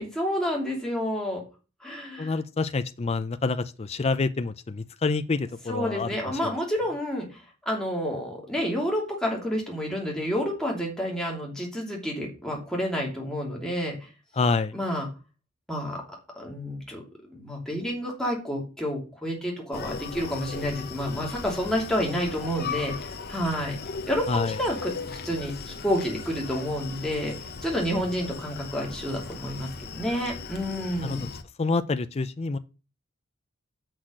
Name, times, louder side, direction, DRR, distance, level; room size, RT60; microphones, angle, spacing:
voice 1, 0.0-1.4 1.8-2.3 5.7-14.1 14.7-15.1 15.7-16.0 16.4-17.0 17.3-23.8 24.1-27.3 27.6-31.3, equal, 5° left, 2.8 m, -29 dB
voice 2, 2.2-6.5 14.4-14.7 24.3-24.6 31.0-31.2 31.6-32.6, left 3 dB, 30° left, 0.4 m, -27 dB
Screaming, 19.7-31.4, left 5 dB, 45° left, 0.9 m, -38 dB
6.3 x 6.1 x 6.4 m
head